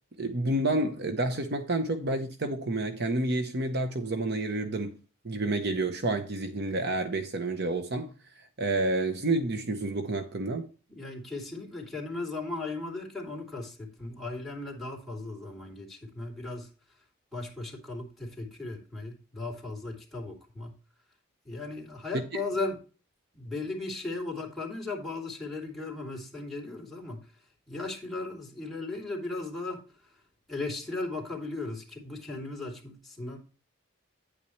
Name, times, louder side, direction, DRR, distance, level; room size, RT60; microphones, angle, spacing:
voice 1, 0.2-4.9 5.2-8.1 8.6-10.7 22.1-22.2, right 2 dB, 55° right, 0.9 m, -29 dB
voice 2, 10.9-16.7 17.3-20.7 21.4-22.8 23.3-27.2 27.7-29.8 30.5-33.4, left 2 dB, ahead, 3.1 m, -36 dB
9.8 x 8.5 x 3.2 m
head